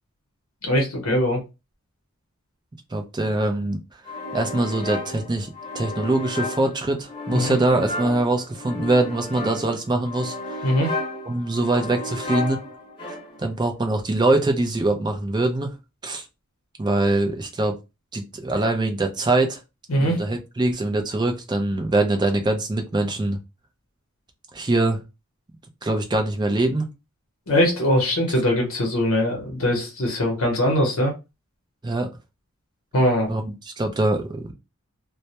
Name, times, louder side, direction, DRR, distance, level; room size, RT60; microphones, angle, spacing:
voice 1, 0.6-1.4 7.3-7.6 10.6-10.9 19.9-20.2 27.5-31.1 32.9-33.3, equal, 65° left, 0.7 m, -21 dB
voice 2, 2.9-3.8 4.3-10.7 11.3-12.6 13.4-15.8 16.0-16.2 16.8-17.7 18.1-19.6 20.0-23.4 24.5-25.0 25.8-26.9 31.8-32.1 33.3-34.5, right 2 dB, 20° right, 0.4 m, -23 dB
sound 1, 4.1-13.6, left 2 dB, 25° left, 1.0 m, -33 dB
2.1 x 2.0 x 2.8 m
head